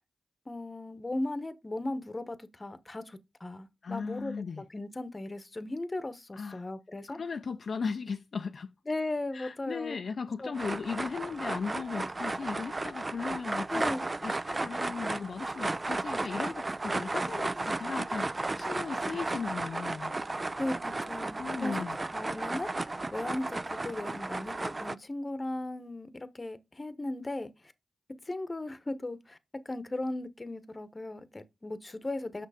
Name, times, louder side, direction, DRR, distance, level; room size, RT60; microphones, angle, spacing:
voice 1, 0.5-7.2 8.9-10.0 10.4-10.5 13.1-13.2 13.7-14.1 20.6-21.8 22.1-22.7 23.1-27.5 28.2-29.4 29.6-32.5, left 2 dB, 30° left, 1.0 m, -37 dB
voice 2, 3.8-4.6 6.3-6.7 7.1-8.7 9.3-13.8 14.2-18.3 18.6-20.1 21.4-22.0, left 5 dB, 65° left, 0.5 m, -37 dB
sound 1, 10.5-24.9, right 2 dB, 30° right, 0.4 m, -34 dB
6.5 x 6.2 x 4.9 m
cardioid pair, 70°, 0 cm